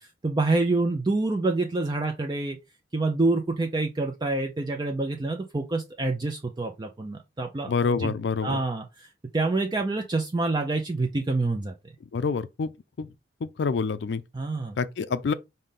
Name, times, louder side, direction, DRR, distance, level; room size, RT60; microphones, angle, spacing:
voice 1, 0.0-2.6 2.9-7.7 8.0-8.1 8.4-9.1 9.3-11.7 14.3-14.8, right 2 dB, 25° right, 0.4 m, -27 dB
voice 2, 7.7-8.6 12.1-12.7 13.0-13.1 13.4-14.2 14.8-15.3, left 5 dB, 70° left, 0.4 m, -27 dB
5.2 x 2.7 x 3.6 m
head